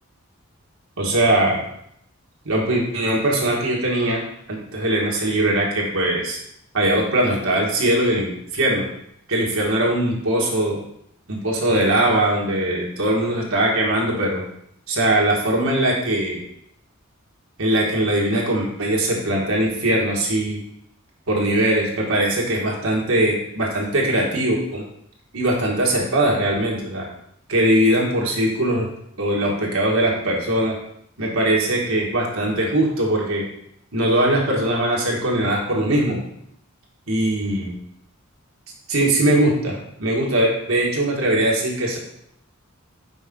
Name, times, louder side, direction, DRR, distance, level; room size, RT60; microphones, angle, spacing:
voice 1, 1.0-1.6 2.4-4.2 4.5-6.4 6.7-8.9 9.3-10.8 11.3-14.4 14.9-16.4 17.6-20.6 21.3-24.8 25.3-27.1 27.5-28.9 29.2-30.8 31.2-33.4 33.9-36.2 37.1-37.7 38.9-42.0, right 1 dB, 75° right, -2 dB, 1.5 m, -21 dB
5.3 x 4.9 x 3.7 m, 0.73 s
head